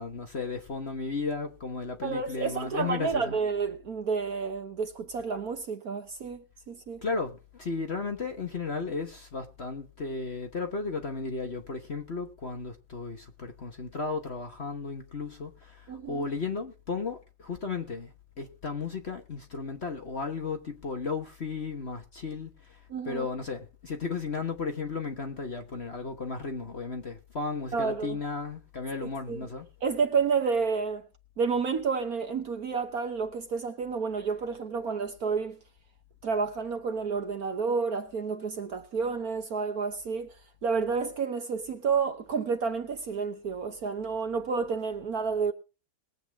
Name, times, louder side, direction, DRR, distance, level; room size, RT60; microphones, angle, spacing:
voice 1, 0.0-3.4 7.0-22.8 23.0-29.7, left 4 dB, 40° left, 1.2 m, -34 dB
voice 2, 2.0-7.0 15.9-16.2 22.9-23.3 27.7-28.2 29.3-29.5 29.8-31.0 31.4-35.6 36.2-40.4 40.6-45.5, right 5 dB, 55° right, 1.2 m, -30 dB
21.0 x 8.2 x 3.4 m
omnidirectional pair, 2.2 m